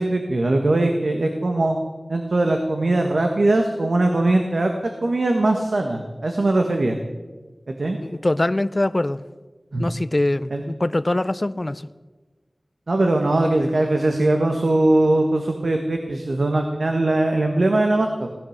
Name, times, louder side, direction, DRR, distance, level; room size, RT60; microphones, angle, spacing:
voice 1, 0.0-1.8 2.1-4.7 5.0-7.0 7.7-8.0 9.7-9.8 10.5-10.6 12.9-18.3, right 2 dB, 80° right, 4 dB, 1.4 m, -20 dB
voice 2, 8.0-9.2 9.8-11.9, left 1 dB, 35° left, 15 dB, 0.6 m, -23 dB
17.5 x 12.0 x 6.6 m, 1.3 s
wide cardioid pair, 65°, 0 cm